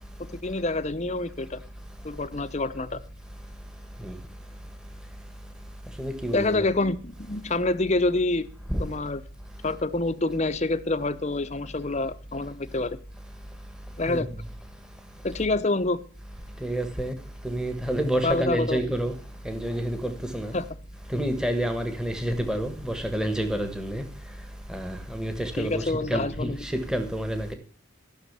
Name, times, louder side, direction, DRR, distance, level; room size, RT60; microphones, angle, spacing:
voice 1, 0.2-1.6 2.0-3.0 6.3-8.5 8.8-9.2 9.6-13.0 14.0-14.3 15.2-16.0 18.2-18.9 20.5-20.7 25.6-26.6, left 2 dB, 35° left, 0.8 m, -27 dB
voice 2, 6.0-6.7 8.7-8.8 14.1-14.3 16.6-17.1 17.4-19.1 19.4-20.5 21.1-24.0 24.7-27.5, right 1 dB, 5° right, 1.6 m, -29 dB
14.0 x 6.5 x 8.2 m
head